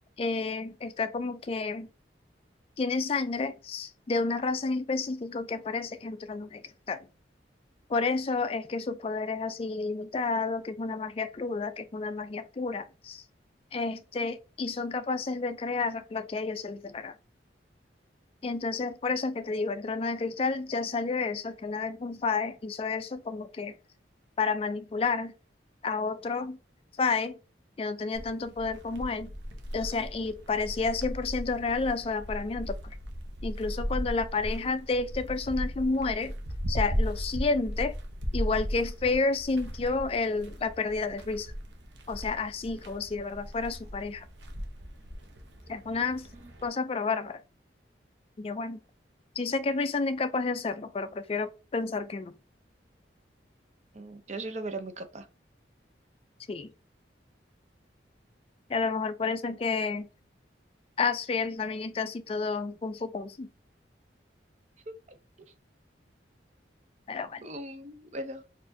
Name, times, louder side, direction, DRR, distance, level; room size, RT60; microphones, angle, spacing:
voice 1, 0.2-1.9 2.8-7.1 7.9-13.2 13.7-17.2 18.4-23.8 24.4-25.3 25.8-26.6 27.0-27.4 27.8-29.3 29.7-33.0 33.4-36.3 36.7-38.0 38.3-41.5 42.1-44.3 45.7-46.3 46.6-47.4 48.4-48.8 49.4-52.3 56.5-56.7 58.7-60.1 61.0-63.5 67.1-67.5, left 4 dB, 30° left, 0.3 m, -30 dB
sound 1, 28.1-46.7, equal, 75° right, 0.8 m, -37 dB
voice 2, 53.9-55.3 64.9-65.2 67.4-68.5, right 2 dB, 40° right, 0.6 m, -39 dB
4.2 x 2.5 x 2.7 m
head